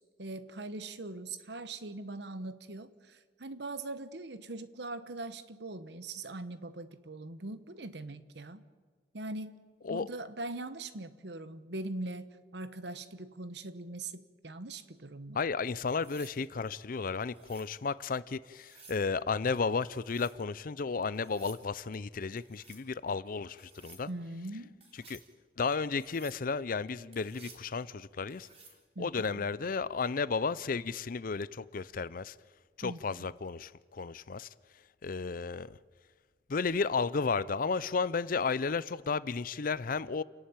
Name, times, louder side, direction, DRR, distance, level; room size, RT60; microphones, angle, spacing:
voice 1, 0.2-8.6 9.1-9.6 9.9-15.4 24.1-24.8 28.9-29.1 29.3-29.5 32.8-33.3, right 2 dB, 70° right, 1.2 m, -41 dB
voice 2, 15.3-24.1 25.1-25.2 25.6-28.5 29.0-32.3 32.8-34.5 35.0-35.8 36.5-40.2, left 4 dB, 50° left, 0.5 m, -33 dB
sound 1, 15.9-16.4 17.3-17.7 18.5-19.0 19.9-20.4 21.1-21.6 22.4-22.8 23.6-24.0 24.8-25.3 26.0-26.4 27.1-27.7 28.3-28.8 30.7-31.0, right 4 dB, 35° right, 4.3 m, -55 dB
29.0 x 11.5 x 9.0 m
head